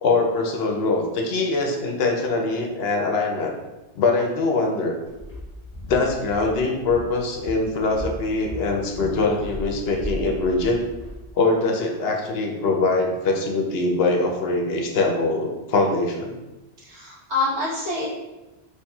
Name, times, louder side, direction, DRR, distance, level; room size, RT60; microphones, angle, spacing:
voice 1, 0.0-3.5 3.9-4.9 5.9-10.8 11.3-16.4, left 3 dB, 70° left, 1 dB, 0.8 m, -23 dB
Walk footsteps, 5.1-11.2, left 1 dB, 15° left, 1.0 m, -36 dB
voice 2, 16.8-18.1, left 2 dB, 75° right, -7 dB, 1.5 m, -26 dB
4.4 x 3.1 x 2.3 m, 1.1 s
omnidirectional pair, 1.1 m